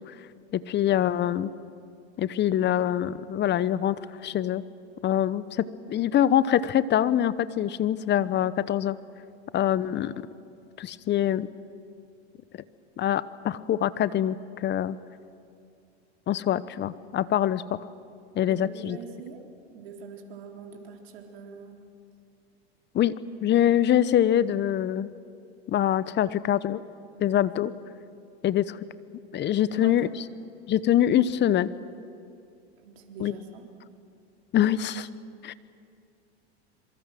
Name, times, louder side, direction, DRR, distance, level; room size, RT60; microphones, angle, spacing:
voice 1, 0.5-1.5 2.2-4.6 5.0-9.0 9.5-10.1 10.8-11.5 13.0-15.0 16.3-17.8 18.3-19.0 22.9-23.1 23.4-25.1 25.7-26.8 27.2-27.7 28.4-28.8 29.3-30.1 30.7-31.7 33.2-33.3 34.5-35.1 35.4-35.5, left 11 dB, 35° left, 16 dB, 1.0 m, -24 dB
voice 2, 18.5-19.4 19.7-21.7 29.6-30.1 32.8-33.6, right 6 dB, 70° right, 1 dB, 4.0 m, -43 dB
26.5 x 23.5 x 7.7 m, 2.5 s
hypercardioid pair, 100°, 32 cm